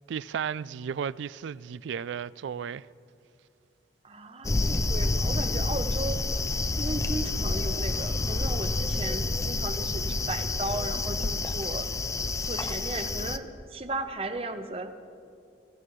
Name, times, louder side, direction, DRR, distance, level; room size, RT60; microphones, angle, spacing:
voice 1, 0.1-2.9, right 7 dB, 75° right, 0.3 m, -34 dB
voice 2, 4.0-6.2 6.7-11.9 12.4-14.9, right 2 dB, 30° right, 0.8 m, -35 dB
sound 1, 4.4-13.4, left 2 dB, 15° left, 0.3 m, -28 dB
25.0 x 15.5 x 3.2 m
head